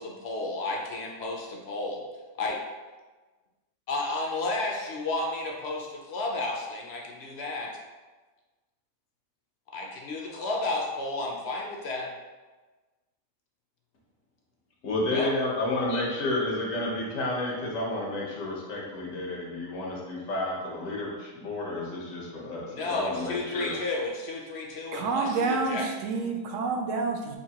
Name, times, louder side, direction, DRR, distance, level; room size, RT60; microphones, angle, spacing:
voice 1, 0.0-2.0 2.4-2.6 3.9-7.7 9.7-12.1 15.1-15.3 22.7-25.9, left 2 dB, 60° left, -1 dB, 0.8 m, -32 dB
voice 2, 14.8-23.8, left 2 dB, 75° left, -2 dB, 1.4 m, -31 dB
voice 3, 24.9-27.4, right 4 dB, 75° right, 2 dB, 1.0 m, -28 dB
5.8 x 2.7 x 2.8 m, 1.3 s
omnidirectional pair, 1.4 m